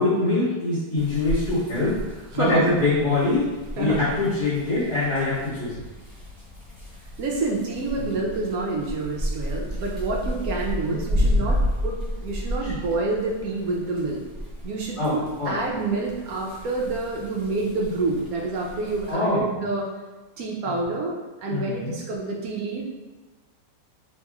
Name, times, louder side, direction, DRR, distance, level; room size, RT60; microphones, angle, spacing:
voice 1, 0.0-5.8 8.0-8.1 10.9-11.5 12.6-12.7 15.0-15.6 19.1-19.4 20.6-20.7 21.5-21.9, left 2 dB, 80° left, -16 dB, 2.2 m, -24 dB
sound 1, 1.0-19.1, equal, 5° left, 1.0 m, -32 dB
voice 2, 2.3-2.6 3.8-4.0 7.2-14.2 14.6-19.9 20.4-22.8, right 3 dB, 70° right, -2 dB, 1.0 m, -28 dB
4.2 x 2.9 x 2.3 m, 1.2 s
omnidirectional pair, 1.8 m